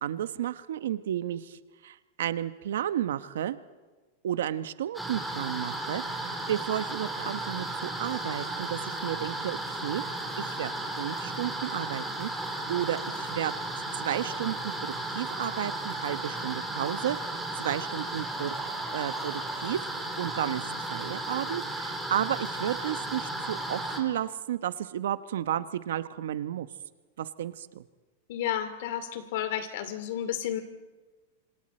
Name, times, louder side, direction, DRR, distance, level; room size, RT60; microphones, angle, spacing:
voice 1, 0.0-3.6 4.2-6.0 6.5-10.0 10.4-10.7 11.0-12.3 12.7-13.5 14.0-17.2 17.6-18.6 18.9-19.9 20.2-26.7 27.2-27.8, right 11 dB, 80° right, 13 dB, 1.0 m, -32 dB
sound 1, 4.9-24.0, right 2 dB, ahead, 3.6 m, -34 dB
voice 2, 28.3-30.6, left 10 dB, 65° left, 10 dB, 2.5 m, -32 dB
28.5 x 26.5 x 4.4 m, 1.3 s
supercardioid pair, 145°, 0 cm